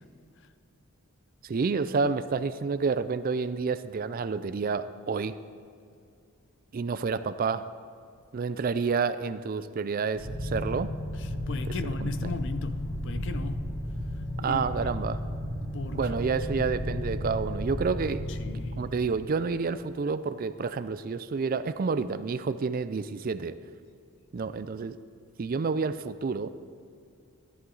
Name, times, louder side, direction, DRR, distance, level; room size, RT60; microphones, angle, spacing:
voice 1, 1.4-5.4 6.7-7.7 8.3-10.9 12.0-12.3 14.4-15.2 15.9-23.6 24.3-25.0 25.4-26.6, right 5 dB, 40° right, 0.4 m, -29 dB
sound 1, 10.2-19.8, equal, 20° right, 2.2 m, -34 dB
voice 2, 11.2-13.8 14.2-14.7 15.7-16.0 16.6-16.7 18.3-18.9, left 3 dB, 55° left, 0.5 m, -37 dB
14.0 x 11.0 x 3.9 m
head